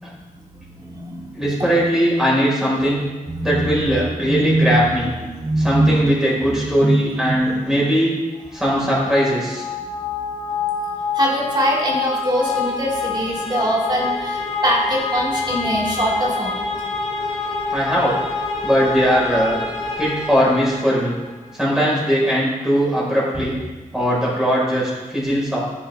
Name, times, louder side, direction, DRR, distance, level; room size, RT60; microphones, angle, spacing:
voice 1, 0.8-1.4 3.3-3.8 4.2-5.1 5.4-6.1 6.4-7.6 11.1-16.7, right 1 dB, 30° right, -3 dB, 2.5 m, -22 dB
voice 2, 1.3-3.0 3.4-5.1 5.6-8.2 8.5-9.7 17.7-18.2 18.6-19.6 20.0-21.2 21.5-23.6 23.9-25.6, equal, 5° right, -6 dB, 4.7 m, -19 dB
sound 1, 8.6-21.4, left 4 dB, 35° left, 4.3 m, -27 dB
15.5 x 9.9 x 3.5 m, 1.2 s
wide cardioid pair, 150°, 14 cm